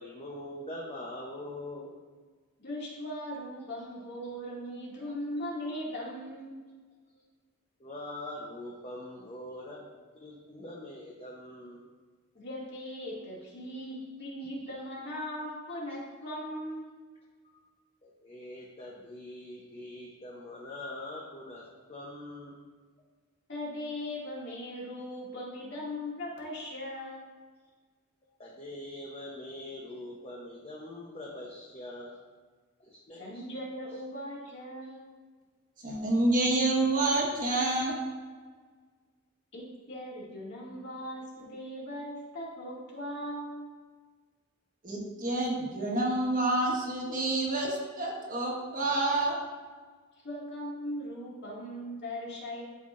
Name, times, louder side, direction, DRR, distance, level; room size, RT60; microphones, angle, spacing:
voice 1, 0.0-2.0 5.0-5.1 7.8-11.8 17.4-17.6 18.0-22.6 28.4-32.2 32.8-33.4, left 1 dB, 30° left, -3 dB, 0.8 m, -43 dB
voice 2, 2.6-6.6 12.3-16.9 23.5-27.2 33.2-35.1 39.5-43.7 50.2-52.6, left 1 dB, 50° left, -5 dB, 2.4 m, -39 dB
voice 3, 35.8-37.9 44.8-49.4, right 2 dB, 40° right, -2 dB, 1.4 m, -28 dB
12.0 x 5.7 x 2.6 m, 1.5 s
head